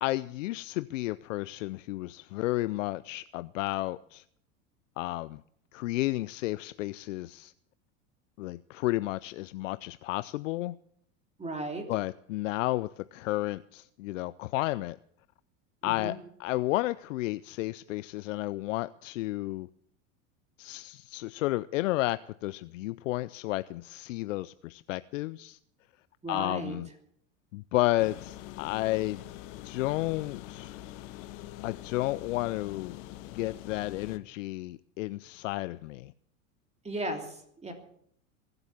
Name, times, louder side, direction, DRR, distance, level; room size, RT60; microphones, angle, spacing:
voice 1, 0.0-4.2 5.0-5.4 5.7-7.5 8.4-10.8 11.9-15.0 15.8-19.7 20.6-25.6 26.3-26.9 27.5-29.2 29.6-30.8 31.6-33.0 33.3-36.1, left 18 dB, 75° left, 0.5 m, -32 dB
voice 2, 11.4-11.8 15.8-16.2 26.2-26.8 36.8-37.7, right 1 dB, 15° right, 3.0 m, -35 dB
sound 1, 28.0-34.2, left 14 dB, 60° left, 1.3 m, -44 dB
22.5 x 8.0 x 7.2 m
hypercardioid pair, 95°, 39 cm